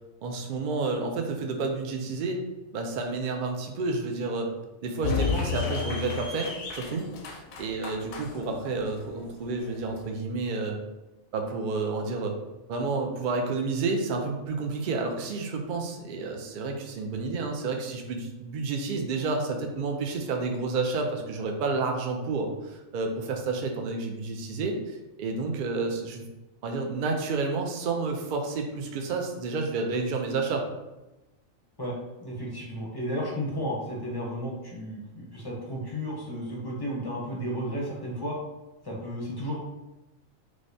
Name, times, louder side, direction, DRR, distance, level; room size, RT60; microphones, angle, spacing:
voice 1, 0.2-2.4 2.7-4.5 4.8-10.8 11.3-12.4 12.7-26.3 26.6-30.7, right 3 dB, 75° right, 2 dB, 0.4 m, -30 dB
sound 1, 5.0-10.1, left 6 dB, 80° left, 1.0 m, -33 dB
voice 2, 32.2-38.4 38.8-39.6, equal, 25° left, -4 dB, 0.5 m, -33 dB
4.7 x 2.1 x 2.6 m, 1.0 s
omnidirectional pair, 1.4 m